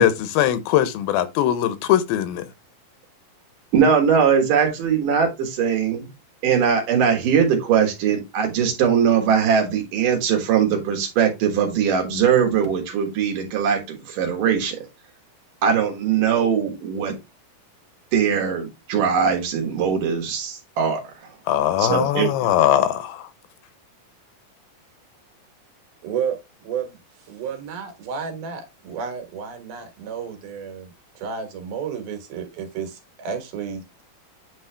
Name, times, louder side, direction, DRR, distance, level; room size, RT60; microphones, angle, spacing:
voice 1, 0.0-2.4 21.5-23.3, left 11 dB, 85° left, 2.6 m, -20 dB
voice 2, 3.7-6.1 6.4-14.8 15.6-17.2 18.1-21.0 21.8-22.3, right 7 dB, 65° right, 3.0 m, -20 dB
voice 3, 26.0-27.0 27.2-30.9 31.2-34.0, right 7 dB, 85° right, 3.3 m, -31 dB
9.2 x 3.2 x 3.3 m
omnidirectional pair, 4.2 m